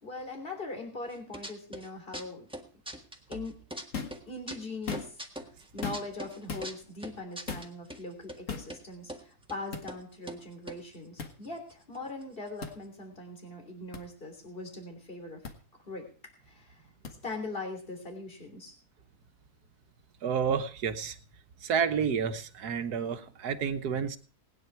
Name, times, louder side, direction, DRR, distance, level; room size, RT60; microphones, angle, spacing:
voice 1, 0.0-2.5 3.3-3.6 4.3-5.2 5.7-15.4 15.9-16.1 16.4-16.8 17.2-18.7, left 2 dB, 35° left, 4 dB, 3.4 m, -41 dB
sound 1, 1.1-1.9 2.1-3.8 4.1-8.0 8.3-8.4 8.7-9.2 9.5-9.6 9.9-10.0 10.3-12.0 12.2-12.3 12.5-12.8, right 1 dB, 5° right, 1.5 m, -42 dB
sound 2, 3.9-4.2 4.7-5.3 5.8-6.2 6.5-6.7 7.5-7.7 8.5-8.7 9.7-9.9 11.2-11.3 12.6-12.8 13.9-14.0 15.4-15.6 17.1-17.2, left 5 dB, 55° left, 1.9 m, -37 dB
voice 2, 20.2-21.2 21.6-24.2, right 7 dB, 80° right, 9 dB, 1.6 m, -30 dB
19.5 x 9.8 x 4.6 m, 0.40 s
omnidirectional pair, 1.7 m